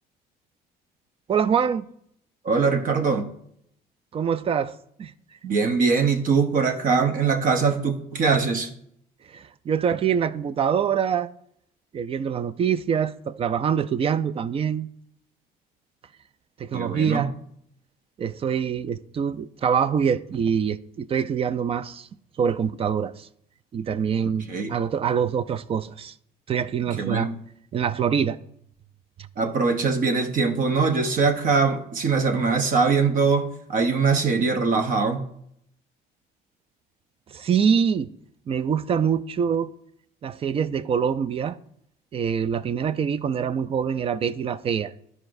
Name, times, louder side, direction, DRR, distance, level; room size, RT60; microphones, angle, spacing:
voice 1, 1.3-1.9 4.1-5.1 9.3-11.3 11.9-14.9 16.6-17.3 18.2-22.1 22.4-23.3 23.7-26.1 26.5-27.3 27.7-28.4 37.3-38.1 38.5-39.7 40.2-41.6 42.1-44.9, right 7 dB, 35° right, 0.4 m, -25 dB
voice 2, 2.4-3.3 5.4-8.7 16.7-17.3 24.5-24.7 27.0-27.4 29.4-35.2, right 4 dB, 55° right, 1.0 m, -22 dB
12.0 x 4.9 x 2.6 m
cardioid pair, 110°, 17 cm